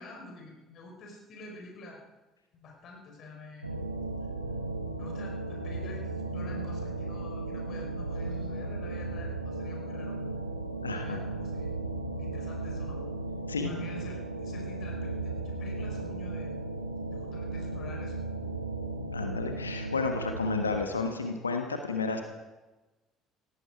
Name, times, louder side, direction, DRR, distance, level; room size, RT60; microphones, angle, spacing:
voice 1, 0.0-2.0 2.5-3.8 5.0-10.2 10.9-11.7 12.2-13.0 13.6-16.6 17.1-18.2, left 2 dB, 50° left, 0 dB, 4.8 m, -47 dB
sound 1, 3.6-20.8, right 2 dB, 90° right, 1.2 m, -35 dB
voice 2, 10.8-11.2 13.5-13.7 19.1-22.2, left 4 dB, 80° left, 5 dB, 1.2 m, -31 dB
17.5 x 17.0 x 4.9 m, 1.1 s
figure-of-eight pair, 55°, 0 cm